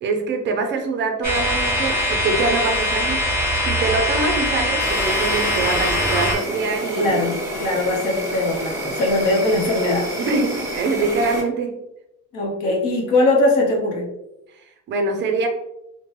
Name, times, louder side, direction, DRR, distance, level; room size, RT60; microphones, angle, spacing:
voice 1, 0.0-3.3 3.6-7.4 7.7-7.8 10.2-11.8 14.9-15.5, right 3 dB, 35° right, 4 dB, 0.4 m, -24 dB
sound 1, 1.2-6.4, left 1 dB, 30° left, 1.1 m, -22 dB
Insect, 4.8-11.4, equal, 10° right, 1.2 m, -29 dB
voice 2, 6.9-10.1 12.3-14.1, left 2 dB, 65° left, 0 dB, 0.8 m, -20 dB
3.1 x 2.1 x 2.9 m, 0.86 s
cardioid pair, 170°, 32 cm